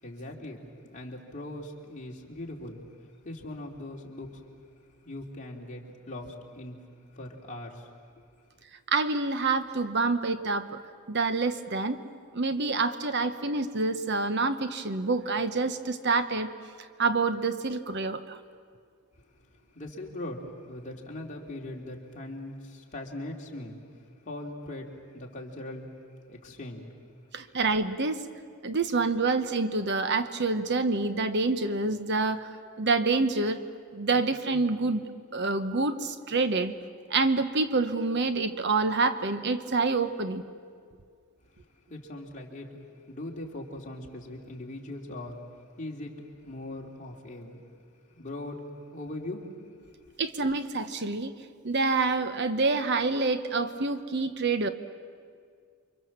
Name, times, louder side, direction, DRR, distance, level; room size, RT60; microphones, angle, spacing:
voice 1, 0.0-0.6 0.9-2.8 3.2-4.3 5.0-6.8 7.1-7.9 19.7-23.8 24.2-25.9 26.3-26.9 41.9-45.4 45.8-46.1 46.4-47.6 48.1-48.6 48.9-49.5, left 1 dB, 35° left, -1 dB, 3.1 m, -40 dB
voice 2, 8.9-10.8 11.1-12.0 12.3-16.5 17.0-18.4 27.3-28.2 28.6-32.5 32.8-33.6 33.9-35.0 35.3-36.7 37.1-40.4 50.2-51.3 51.6-54.7, right 3 dB, 50° right, 10 dB, 1.0 m, -27 dB
29.5 x 24.5 x 7.5 m, 2.1 s
head